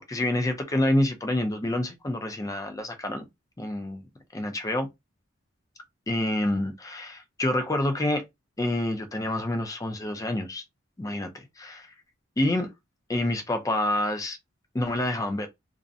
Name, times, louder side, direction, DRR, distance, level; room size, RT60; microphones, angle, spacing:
voice 1, 0.1-3.3 3.6-4.0 4.3-4.9 6.1-8.2 8.6-10.6 11.0-11.9 12.4-12.7 13.1-14.4 14.7-15.5, left 1 dB, 15° left, 0.4 m, -27 dB
2.4 x 2.1 x 2.6 m
head